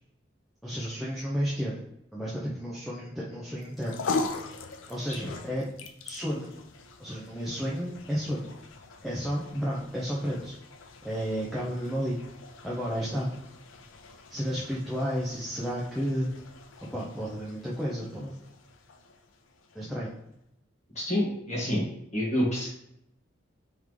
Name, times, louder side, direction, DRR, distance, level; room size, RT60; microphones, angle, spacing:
voice 1, 0.6-1.8 2.1-4.0 4.9-5.7 6.0-6.5 7.0-8.5 9.0-10.5 11.0-12.2 12.6-13.3 14.3-16.3 16.9-18.4 19.7-20.1, equal, ahead, -7 dB, 0.6 m, -32 dB
sound 1, 3.6-20.1, left 3 dB, 90° left, 0.5 m, -41 dB
voice 2, 20.9-21.8 22.1-22.7, left 1 dB, 35° left, -5 dB, 1.5 m, -28 dB
3.7 x 3.5 x 3.1 m, 0.80 s
head